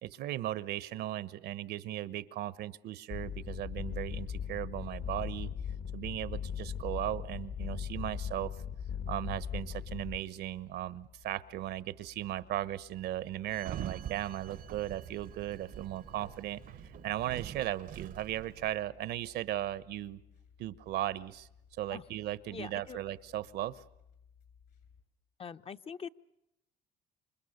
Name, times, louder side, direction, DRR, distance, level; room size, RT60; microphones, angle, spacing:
voice 1, 0.0-5.5 5.9-8.6 9.1-20.2 20.6-21.5 21.8-23.8, right 13 dB, 75° right, 17 dB, 1.1 m, -37 dB
Mechanical drone, 3.1-10.2, left 8 dB, 55° left, 1.7 m, -39 dB
sound 1, 8.1-25.0, left 7 dB, 75° left, 7.2 m, -60 dB
Sliding door, 13.5-18.8, right 10 dB, 55° right, 0.8 m, -45 dB
voice 2, 22.5-23.0 25.4-26.1, left 6 dB, 35° left, 10 dB, 0.9 m, -43 dB
27.5 x 24.5 x 6.7 m, 0.87 s
cardioid pair, 110°, 17 cm